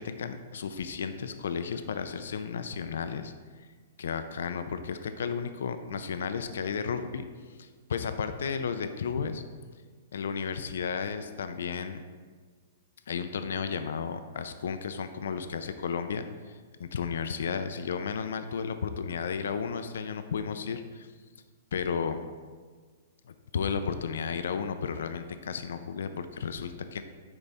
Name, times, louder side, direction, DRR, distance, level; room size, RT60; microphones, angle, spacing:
voice 1, 0.0-3.3 4.0-9.4 10.1-12.0 13.1-21.1 21.7-22.2 23.3-27.0, left 6 dB, 80° left, 9 dB, 0.5 m, -33 dB
9.6 x 4.0 x 3.5 m, 1.5 s
hypercardioid pair, 160°, 0 cm